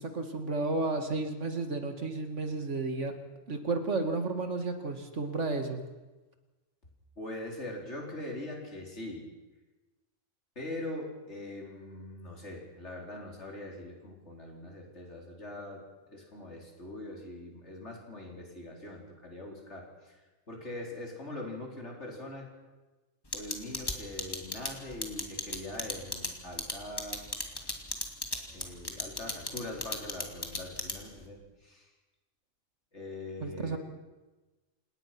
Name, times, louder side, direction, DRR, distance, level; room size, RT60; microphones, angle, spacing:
voice 1, 0.0-3.1 3.5-5.8 33.4-33.8, right 3 dB, 60° right, 6 dB, 2.3 m, -32 dB
voice 2, 7.2-9.3 10.6-15.8 16.1-20.2 20.5-22.5 23.3-27.3 27.5-27.6 28.5-31.9 32.9-33.8, left 1 dB, 55° left, 0 dB, 4.7 m, -42 dB
sound 1, 23.3-31.2, left 1 dB, 15° left, 2.6 m, -34 dB
28.0 x 18.5 x 6.0 m, 1.2 s
omnidirectional pair, 1.4 m